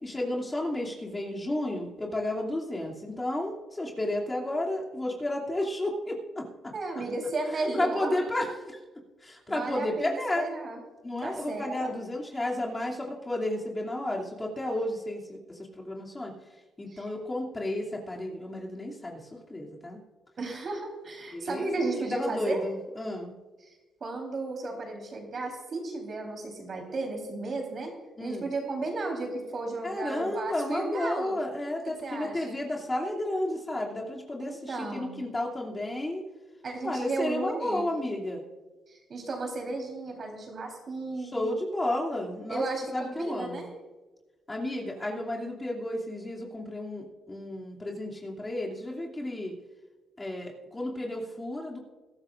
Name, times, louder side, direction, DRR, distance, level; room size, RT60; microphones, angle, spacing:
voice 1, 0.0-6.7 7.7-8.8 9.2-10.5 11.0-16.3 16.8-20.0 21.3-21.7 22.1-23.3 28.2-28.5 29.8-36.2 36.8-38.4 41.3-42.6 42.9-43.7 44.5-49.5 50.2-51.8, left 1 dB, 20° left, -3 dB, 2.7 m, -32 dB
voice 2, 6.7-8.2 9.5-10.8 11.2-12.0 16.9-17.1 20.4-22.6 23.6-23.7 24.0-27.9 28.2-31.4 32.0-32.6 34.4-35.2 36.6-37.9 38.9-41.5 42.5-43.7, right 3 dB, 45° right, 2 dB, 3.9 m, -34 dB
22.0 x 12.5 x 2.6 m, 1.2 s
cardioid pair, 90°, 0 cm